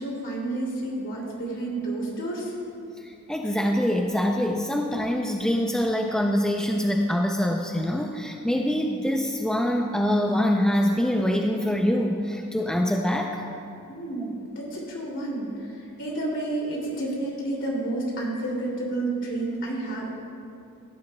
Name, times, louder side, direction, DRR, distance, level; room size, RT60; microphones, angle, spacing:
voice 1, 0.0-2.5 13.9-20.1, right 2 dB, 60° left, -3 dB, 2.6 m, -30 dB
voice 2, 3.0-13.4, equal, 5° left, 1 dB, 0.4 m, -24 dB
16.0 x 10.0 x 2.2 m, 2.5 s
head